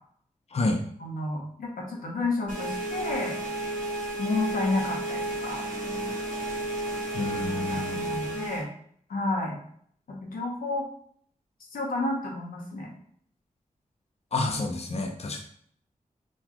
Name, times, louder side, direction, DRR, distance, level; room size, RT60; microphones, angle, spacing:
voice 1, 1.0-3.3 4.2-5.6 7.3-8.7 9.1-9.6 10.1-10.9 11.7-12.9, left 2 dB, 90° left, -1 dB, 0.8 m, -31 dB
sound 1, 2.5-8.6, right 1 dB, 75° right, 1.1 m, -32 dB
voice 2, 7.1-8.2 14.3-15.4, left 2 dB, 45° left, 2 dB, 0.6 m, -29 dB
4.1 x 2.3 x 2.9 m, 0.63 s
cardioid pair, 50°, 14 cm